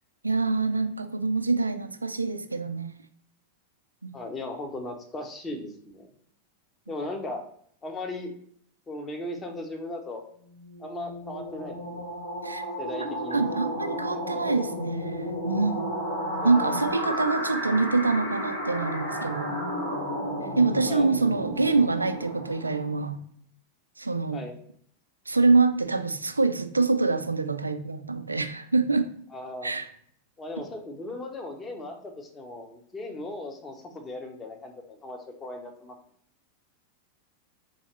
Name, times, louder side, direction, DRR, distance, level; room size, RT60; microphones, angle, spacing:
voice 1, 0.2-2.9 4.0-4.1 12.4-12.6 13.3-15.8 16.4-19.7 20.6-23.2 24.0-24.5 25.3-29.1 29.6-29.9, right 3 dB, 80° right, 9 dB, 0.4 m, -25 dB
voice 2, 4.1-6.1 6.9-7.5 7.8-8.3 8.9-10.2 10.8-12.1 12.8-13.4 14.3-14.8 16.4-16.8 17.1-17.4 20.9-21.1 24.3-24.6 29.3-29.7 30.4-36.0, left 2 dB, 20° left, 3 dB, 0.8 m, -37 dB
sound 1, 10.5-23.1, equal, 75° left, 1.3 m, -33 dB
4.1 x 3.5 x 3.2 m, 0.64 s
figure-of-eight pair, 90°, 0 cm